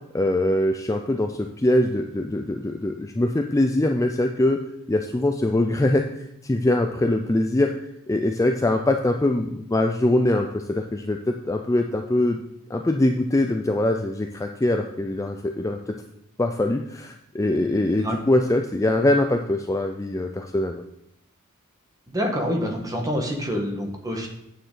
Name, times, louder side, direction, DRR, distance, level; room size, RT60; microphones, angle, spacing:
voice 1, 0.1-4.6 4.9-6.0 6.4-7.7 8.1-12.4 12.7-15.8 16.4-20.8, left 1 dB, 15° left, 4 dB, 0.4 m, -23 dB
voice 2, 22.1-24.3, equal, 15° right, 2 dB, 1.3 m, -27 dB
9.1 x 6.6 x 3.9 m, 0.80 s
head